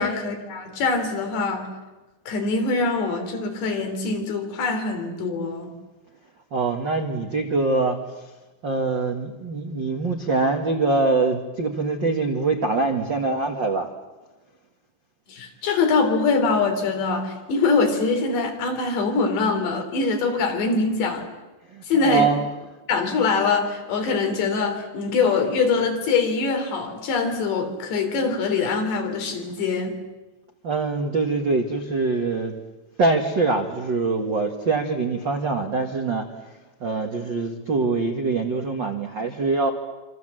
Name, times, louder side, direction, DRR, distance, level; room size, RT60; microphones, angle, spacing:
voice 1, 0.0-1.7 2.3-5.8 15.3-21.3 21.8-22.3 22.9-30.0, left 4 dB, 80° left, 5.5 m, -23 dB
voice 2, 6.5-8.0 8.6-13.9 21.7-22.4 30.6-32.6 33.0-36.3 36.8-39.7, right 3 dB, 75° right, 1.0 m, -24 dB
26.5 x 26.5 x 7.7 m
omnidirectional pair, 4.9 m